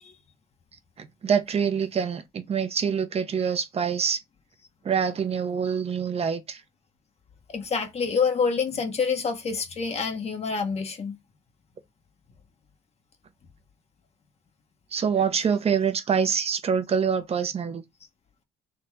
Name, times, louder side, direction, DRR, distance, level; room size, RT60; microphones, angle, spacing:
voice 1, 1.0-4.2 4.8-6.6 14.9-17.8, right 7 dB, 35° right, 0.9 m, -25 dB
voice 2, 7.5-11.2, left 5 dB, 40° left, 1.0 m, -27 dB
3.7 x 3.0 x 4.6 m
cardioid pair, 110°, 17 cm